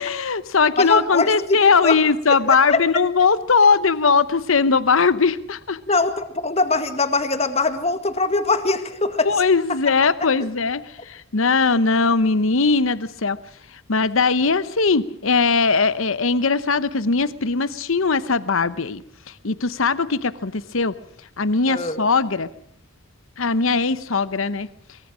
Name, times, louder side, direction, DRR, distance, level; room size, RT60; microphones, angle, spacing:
voice 1, 0.0-5.8 9.2-13.4 13.9-19.0 19.3-20.9 21.4-22.5 23.4-24.7, left 4 dB, 70° left, 15 dB, 0.9 m, -20 dB
voice 2, 0.8-2.0 2.5-2.8 5.9-9.3 21.7-22.0, left 3 dB, 30° left, 8 dB, 1.9 m, -22 dB
23.5 x 22.0 x 6.3 m, 0.63 s
head